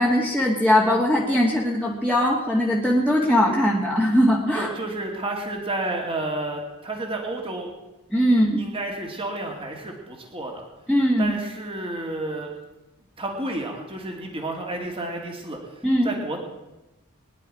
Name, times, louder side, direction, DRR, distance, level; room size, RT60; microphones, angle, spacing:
voice 1, 0.0-4.7 8.1-8.6 10.9-11.3 15.8-16.1, equal, 5° right, -5 dB, 1.8 m, -20 dB
voice 2, 4.5-7.7 8.6-10.7 11.2-12.5 13.2-16.4, right 2 dB, 25° right, 1 dB, 2.3 m, -31 dB
22.0 x 11.0 x 4.9 m, 1.0 s
head